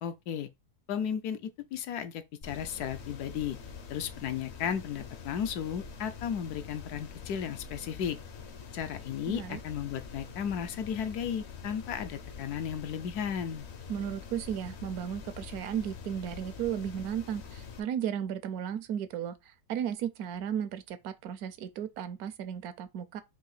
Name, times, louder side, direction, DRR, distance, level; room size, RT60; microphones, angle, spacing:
voice 1, 0.0-0.5 0.9-3.6 3.9-8.2 8.7-13.6, left 8 dB, 75° left, 1.1 m, -34 dB
sound 1, 2.4-17.8, left 6 dB, 55° left, 0.8 m, -45 dB
voice 2, 9.3-9.6 13.9-23.2, right 9 dB, 75° right, 1.0 m, -35 dB
4.6 x 2.8 x 4.0 m
omnidirectional pair, 1.7 m